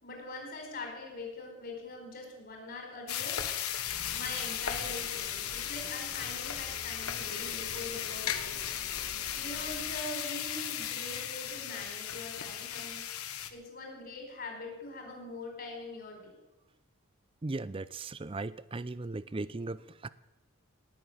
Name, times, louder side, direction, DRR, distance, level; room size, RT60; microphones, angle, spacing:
voice 1, 0.0-3.4 4.1-13.0 13.5-16.4, left 2 dB, 45° left, 2 dB, 4.8 m, -43 dB
sound 1, 3.1-13.5, left 10 dB, 90° left, 1.3 m, -36 dB
sound 2, 3.8-10.0, equal, 80° right, 4.6 m, -50 dB
voice 2, 17.4-20.1, right 2 dB, 25° right, 17 dB, 0.5 m, -37 dB
19.0 x 7.6 x 9.2 m, 0.99 s
head